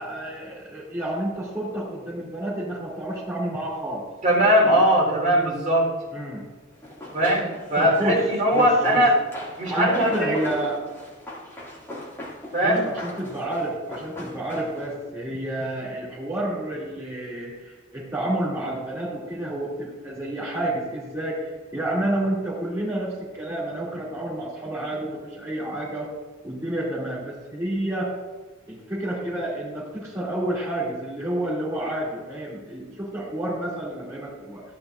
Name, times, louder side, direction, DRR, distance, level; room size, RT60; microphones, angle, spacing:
voice 1, 0.0-4.0 6.1-6.4 7.8-8.2 8.5-9.0 9.7-10.8 12.6-26.1 26.4-28.1 28.7-34.6, right 1 dB, 15° right, -10 dB, 2.6 m, -29 dB
voice 2, 4.2-5.9 7.1-9.2 9.6-10.3 12.5-12.8, equal, 35° right, -4 dB, 3.8 m, -20 dB
Run, 6.8-15.0, left 1 dB, 10° left, 2.3 m, -39 dB
14.5 x 11.0 x 2.6 m, 1.3 s
head